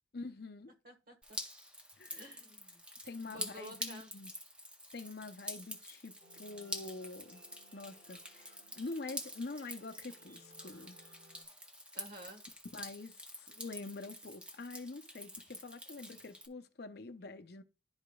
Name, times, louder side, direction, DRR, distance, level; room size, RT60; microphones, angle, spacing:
voice 1, 0.1-0.7 2.0-2.3 3.0-4.3 4.9-7.4 7.7-11.0 12.7-17.6, left 3 dB, 55° left, 0.6 m, -46 dB
voice 2, 0.8-1.4 2.1-2.8 3.1-4.1 11.9-12.4, equal, 50° right, 1.3 m, -51 dB
Drip, 1.2-16.5, equal, 5° right, 0.6 m, -47 dB
sound 1, 6.2-11.4, equal, 35° right, 1.9 m, -63 dB
11.0 x 5.0 x 2.3 m
head